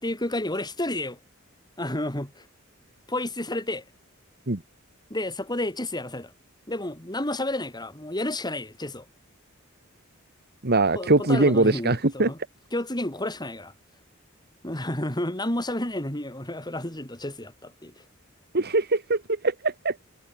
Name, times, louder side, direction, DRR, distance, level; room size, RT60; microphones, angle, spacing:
voice 1, 0.0-1.2 1.8-2.5 3.1-3.8 5.1-6.3 6.7-9.1 10.9-12.4 12.7-13.7 14.6-18.0, left 1 dB, 20° left, 6.0 m, -31 dB
voice 2, 10.6-12.3 18.5-20.0, right 2 dB, 50° right, 1.8 m, -22 dB
head